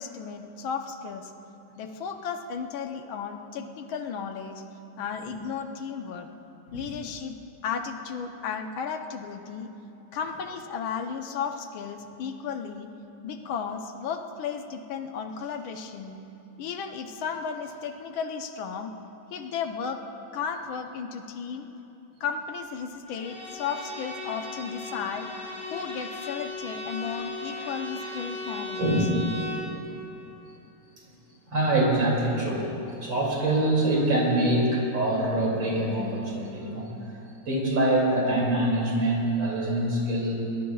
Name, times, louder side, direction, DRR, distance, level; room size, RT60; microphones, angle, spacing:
voice 1, 0.0-1.3 1.8-4.6 5.0-6.3 6.7-9.7 10.1-12.9 13.2-16.2 16.6-18.9 19.3-20.0 20.3-21.7 22.2-25.3 25.7-28.9, left 6 dB, 80° left, 5 dB, 1.6 m, -34 dB
Bowed string instrument, 23.1-29.7, left 2 dB, 30° left, 3.7 m, -37 dB
voice 2, 31.5-36.9 37.5-40.3, right 1 dB, 65° right, -3 dB, 3.4 m, -25 dB
22.0 x 20.0 x 2.4 m, 3.0 s
omnidirectional pair, 2.2 m